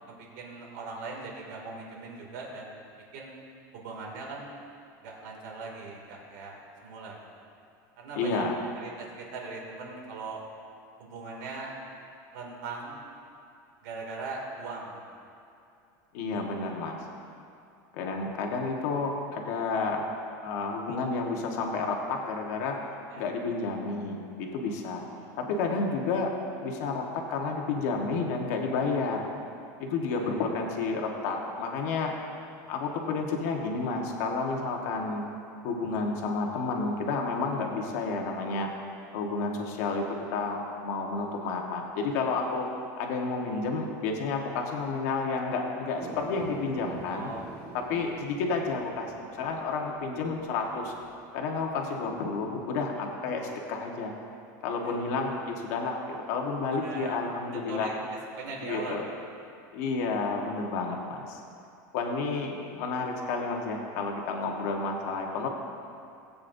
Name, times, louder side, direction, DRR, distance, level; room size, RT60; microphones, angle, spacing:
voice 1, 0.1-2.8 3.1-3.3 3.7-4.6 5.0-7.2 8.0-8.4 8.7-8.9 9.2-10.4 11.0-11.8 12.3-13.0 13.8-15.0 23.1-23.3 25.1-25.4 30.1-30.5 32.6-32.7 47.1-47.5 47.9-48.1 54.8-55.0 56.8-57.2 57.7-58.0 58.4-59.0, right 3 dB, 70° right, -1 dB, 2.6 m, -40 dB
voice 2, 8.2-8.5 16.1-17.0 17.9-20.1 20.4-22.8 23.2-25.0 25.4-26.3 26.6-29.3 29.8-32.1 32.7-35.2 35.6-38.7 39.1-42.7 43.0-47.3 47.7-50.9 51.3-54.1 54.6-57.9 58.6-59.0 59.7-61.4 61.9-65.5, left 4 dB, 55° left, 1 dB, 1.5 m, -31 dB
sound 1, 45.9-52.3 52.8-52.9, right 3 dB, 25° right, 1.7 m, -46 dB
18.0 x 8.7 x 2.7 m, 2.6 s
supercardioid pair, 175°, 10 cm